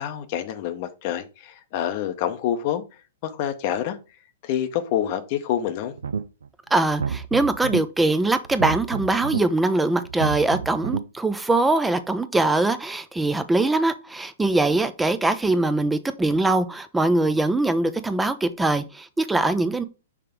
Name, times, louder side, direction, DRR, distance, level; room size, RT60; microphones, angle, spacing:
voice 1, 0.0-2.8 3.2-4.0 4.4-5.9, left 10 dB, 45° left, 0.8 m, -27 dB
sound 1, 6.0-6.5 6.9-7.8 8.5-9.4 10.1-11.0, right 6 dB, 75° right, 0.5 m, -29 dB
voice 2, 6.7-19.8, right 2 dB, 10° right, 0.6 m, -22 dB
5.8 x 3.3 x 5.0 m
figure-of-eight pair, 115°, 0 cm